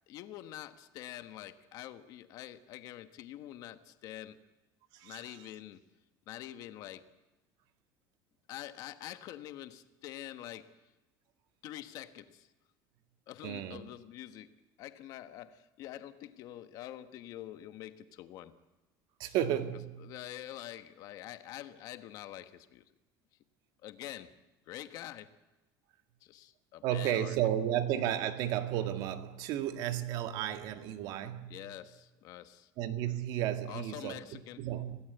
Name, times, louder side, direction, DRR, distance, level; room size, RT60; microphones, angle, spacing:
voice 1, 0.1-4.4 5.0-5.8 6.3-7.1 8.5-10.7 11.6-12.5 13.3-18.5 19.2-19.3 20.0-22.8 23.8-24.3 24.7-25.3 26.2-27.4 31.5-32.7 33.6-34.7, left 13 dB, 45° left, 1.4 m, -46 dB
voice 2, 4.9-5.4 13.4-13.8 19.2-20.1 26.8-31.6 32.8-35.0, right 11 dB, 55° right, 1.8 m, -33 dB
26.5 x 17.5 x 8.1 m
cardioid pair, 175°, 9 cm